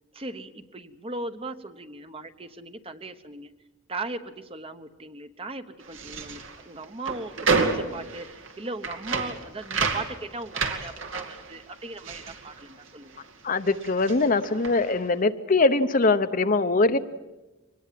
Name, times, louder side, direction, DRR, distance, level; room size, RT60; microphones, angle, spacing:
voice 1, 0.1-3.5 3.9-13.3, right 2 dB, 30° right, 9 dB, 1.0 m, -38 dB
sound 1, 5.8-13.3 13.6-15.0, right 4 dB, 75° right, 2.2 m, -30 dB
voice 2, 13.4-17.0, left 3 dB, 40° left, 10 dB, 0.8 m, -22 dB
24.0 x 20.0 x 7.6 m, 1.1 s
head